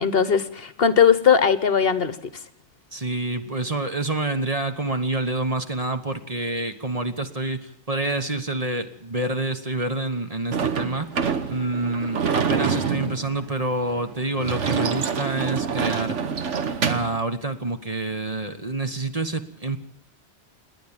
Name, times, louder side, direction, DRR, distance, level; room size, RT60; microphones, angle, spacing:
voice 1, 0.0-2.2, left 7 dB, 55° left, 14 dB, 1.2 m, -19 dB
voice 2, 2.9-11.1 11.5-16.2 16.8-19.8, right 2 dB, 30° right, 8 dB, 1.4 m, -27 dB
Sliding door / Slam, 10.5-17.2, right 6 dB, 85° right, 1.5 m, -26 dB
28.5 x 10.5 x 8.9 m, 0.72 s
omnidirectional pair, 1.2 m